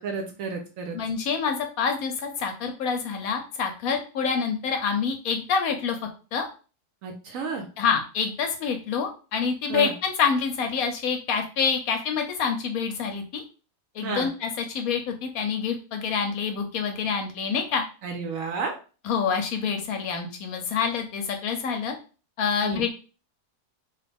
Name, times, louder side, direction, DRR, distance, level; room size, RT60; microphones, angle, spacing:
voice 1, 0.0-1.0 7.0-7.7 9.7-9.9 14.0-14.3 18.0-18.7 22.6-22.8, right 5 dB, 70° right, 4 dB, 0.8 m, -31 dB
voice 2, 0.9-6.0 6.3-6.5 7.8-13.4 13.9-17.8 19.1-21.9 22.4-22.9, left 6 dB, 70° left, 5 dB, 0.9 m, -27 dB
3.0 x 2.4 x 3.3 m, 0.35 s
omnidirectional pair, 1.7 m